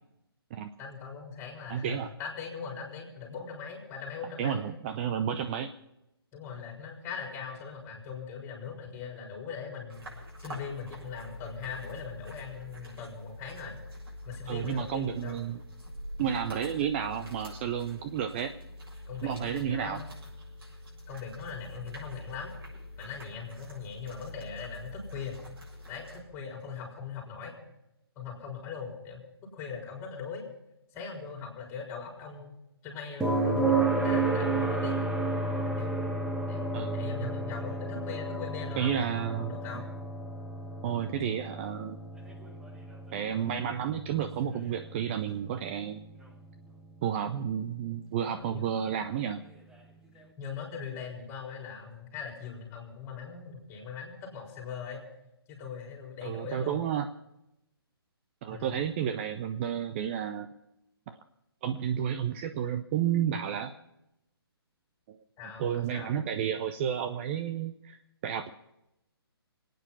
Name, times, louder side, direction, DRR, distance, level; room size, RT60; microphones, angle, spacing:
voice 1, 0.8-4.6 6.3-10.1 10.4-13.8 14.2-15.4 19.1-20.1 21.1-22.5 23.0-25.4 25.9-27.5 28.2-29.2 29.5-30.4 30.9-32.5 32.8-35.0 35.8-36.0 36.5-39.9 48.3-48.7 50.1-55.0 55.5-56.8 58.5-58.8 65.4-66.1, left 6 dB, 20° left, 0 dB, 4.3 m, -40 dB
voice 2, 1.7-2.1 4.4-5.7 14.5-15.6 16.2-18.5 19.2-20.0 36.7-37.3 38.8-39.5 40.8-42.0 43.1-46.0 47.0-49.4 56.2-57.1 58.4-60.5 61.1-61.2 61.6-63.7 65.1-65.2 65.6-68.5, right 9 dB, 30° right, 8 dB, 0.6 m, -31 dB
sound 1, 9.9-26.2, left 1 dB, 65° right, 6.7 m, -45 dB
sound 2, 33.2-47.1 49.3-49.4, right 3 dB, 5° right, 1.2 m, -32 dB
23.5 x 9.4 x 5.6 m, 0.87 s
figure-of-eight pair, 140°, 13 cm